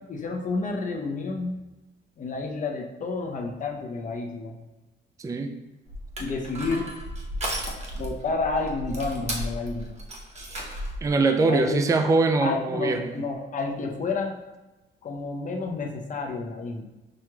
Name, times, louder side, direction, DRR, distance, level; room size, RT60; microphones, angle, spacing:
voice 1, 0.1-1.6 2.2-4.6 6.2-6.9 7.7-9.9 10.6-10.7 11.5-11.8 12.4-14.4 15.0-16.8, left 3 dB, 40° left, 2 dB, 0.7 m, -30 dB
Crushing, 5.9-11.1, right 1 dB, 35° right, 0.9 m, -34 dB
voice 2, 11.0-13.2, right 3 dB, 15° right, 5 dB, 0.3 m, -22 dB
6.2 x 2.9 x 2.3 m, 1.1 s
cardioid pair, 90°, 20 cm